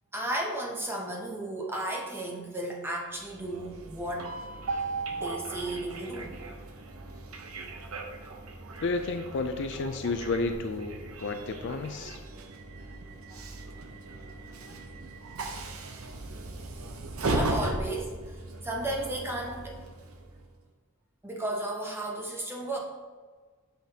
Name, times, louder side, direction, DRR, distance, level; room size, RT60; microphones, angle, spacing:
voice 1, 0.1-4.3 5.2-6.4 17.2-19.8 21.2-22.8, right 1 dB, 10° right, -1 dB, 0.9 m, -34 dB
Train, 3.2-20.5, right 2 dB, 80° right, 0.8 m, -37 dB
voice 2, 8.8-12.2, left 3 dB, 55° left, 6 dB, 0.4 m, -31 dB
9.0 x 5.7 x 2.8 m, 1.5 s
head